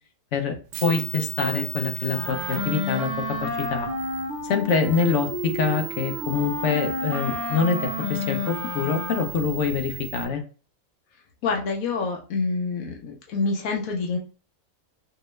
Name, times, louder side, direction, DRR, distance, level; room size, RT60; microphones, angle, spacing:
voice 1, 0.3-3.1 3.6-3.9 4.5-10.4, left 5 dB, 65° left, 6 dB, 0.9 m, -25 dB
sound 1, 0.7-10.3, right 11 dB, 85° right, 1.0 m, -37 dB
Wind instrument woodwind instrument, 2.1-9.5, left 2 dB, 45° left, 1.4 m, -31 dB
voice 2, 11.4-14.2, left 4 dB, 85° left, 1 dB, 1.1 m, -27 dB
4.4 x 2.0 x 3.1 m, 0.37 s
omnidirectional pair, 1.4 m